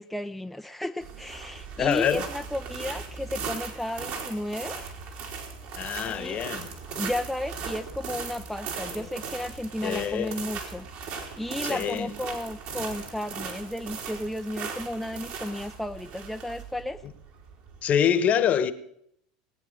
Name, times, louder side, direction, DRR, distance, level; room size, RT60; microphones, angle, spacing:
voice 1, 0.0-4.8 6.1-6.4 7.0-10.9 11.4-17.0, left 1 dB, ahead, 0.5 m, -33 dB
sound 1, 1.0-17.9, right 5 dB, 60° right, 3.5 m, -38 dB
voice 2, 1.8-2.2 5.8-6.7 8.9-9.0 9.8-10.3 11.6-12.1 17.8-18.7, left 9 dB, 40° left, 1.1 m, -25 dB
20.0 x 8.7 x 6.4 m
hypercardioid pair, 100°, 4 cm